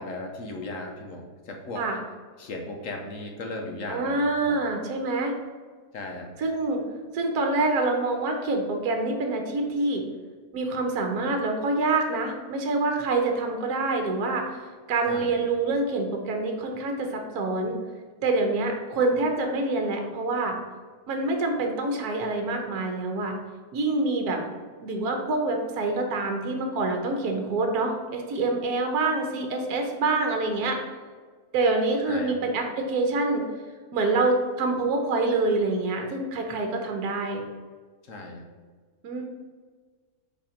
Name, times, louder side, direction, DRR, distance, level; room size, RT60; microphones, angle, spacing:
voice 1, 0.0-1.8 2.4-4.6 5.9-6.3 15.1-15.4 32.0-32.3 38.0-38.4, left 2 dB, 60° left, 2 dB, 1.1 m, -36 dB
voice 2, 3.9-5.3 6.4-6.8 7.1-10.0 10.5-17.8 18.2-20.5 21.1-23.3 23.7-24.4 24.8-30.8 31.5-33.4 33.9-37.4 39.0-39.3, right 3 dB, 70° right, 3 dB, 1.4 m, -26 dB
5.7 x 4.3 x 4.9 m, 1.5 s
omnidirectional pair, 1.7 m